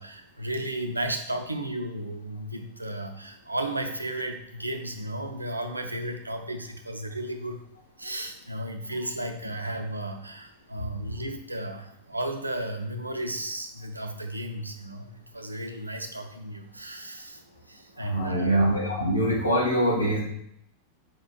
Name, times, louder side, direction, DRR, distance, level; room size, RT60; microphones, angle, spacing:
voice 1, 0.0-7.6 8.0-18.5, right 1 dB, 85° right, 5 dB, 0.6 m, -34 dB
voice 2, 18.0-20.2, right 1 dB, 80° left, -3 dB, 1.8 m, -24 dB
5.0 x 4.3 x 4.5 m, 0.74 s
figure-of-eight pair, 90°, 0 cm